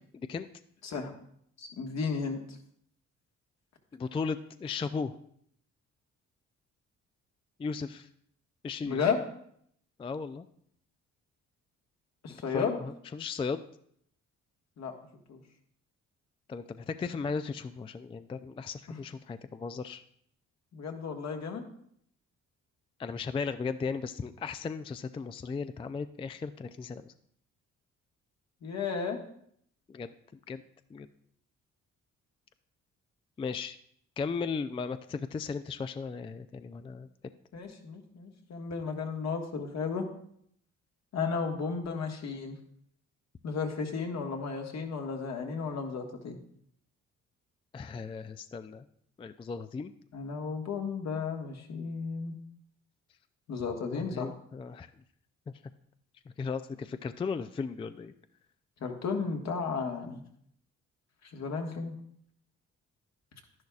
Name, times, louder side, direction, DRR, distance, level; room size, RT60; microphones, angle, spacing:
voice 1, 0.1-0.5 3.9-5.1 7.6-8.1 8.6-9.0 10.0-10.5 12.3-13.6 16.5-20.0 23.0-27.1 29.9-30.1 30.5-30.6 30.9-31.1 33.4-33.8 34.2-37.1 47.7-48.8 49.2-49.9 53.9-54.9 56.4-58.1, left 5 dB, 20° left, 11 dB, 0.3 m, -36 dB
voice 2, 1.6-2.6 8.8-9.2 12.2-12.8 14.8-15.0 15.3-15.4 18.9-19.0 20.7-21.7 28.6-29.2 37.5-40.1 41.1-42.6 43.4-46.4 50.1-52.4 53.5-54.3 58.8-60.2 61.2-61.9, left 5 dB, 60° left, 3 dB, 1.5 m, -33 dB
11.0 x 10.5 x 2.4 m, 0.67 s
cardioid pair, 90°, 30 cm